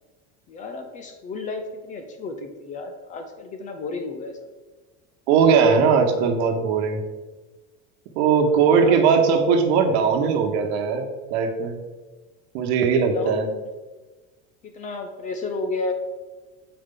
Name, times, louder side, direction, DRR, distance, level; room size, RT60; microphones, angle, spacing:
voice 1, 0.5-4.4 8.5-9.3 13.1-13.6 14.7-15.9, left 3 dB, 25° left, 6 dB, 0.4 m, -32 dB
voice 2, 5.3-7.0 8.1-11.8 12.5-13.4, right 6 dB, 70° right, 4 dB, 1.1 m, -19 dB
8.1 x 4.7 x 3.8 m, 1.3 s
cardioid pair, 170°, 34 cm